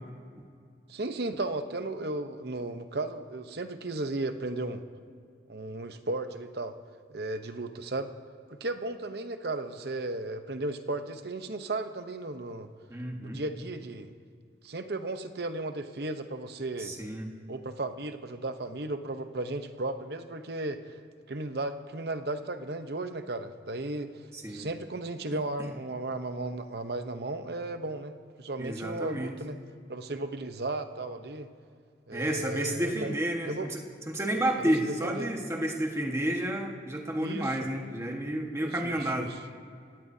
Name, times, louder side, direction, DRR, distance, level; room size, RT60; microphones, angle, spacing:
voice 1, 0.9-4.8 5.5-6.7 7.1-8.1 8.5-12.7 13.2-14.1 14.6-17.0 17.5-21.0 21.3-24.1 24.5-29.6 29.9-31.5 32.1-33.1 33.4-33.7 34.6-35.3 37.2-37.7 38.6-39.4, right 2 dB, 60° right, 8 dB, 0.8 m, -35 dB
voice 2, 12.9-13.4 16.8-17.3 24.3-24.7 25.6-25.7 28.6-29.3 32.1-39.3, right 1 dB, 15° right, 1 dB, 1.4 m, -31 dB
28.5 x 17.0 x 2.8 m, 2.2 s
head